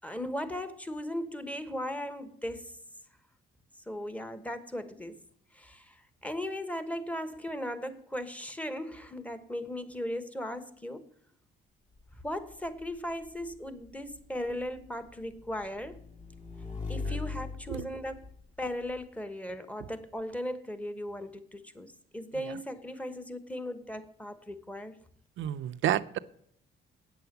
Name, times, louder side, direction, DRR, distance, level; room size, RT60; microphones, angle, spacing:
voice 1, 0.0-2.7 3.9-5.2 5.5-11.1 12.2-16.0 16.9-25.0, left 1 dB, 5° left, 1.1 m, -37 dB
Motorcycle / Engine, 11.9-19.0, left 4 dB, 35° left, 2.2 m, -42 dB
voice 2, 25.4-26.2, right 11 dB, 75° right, 0.6 m, -30 dB
8.9 x 7.0 x 7.9 m
cardioid pair, 90°, 20 cm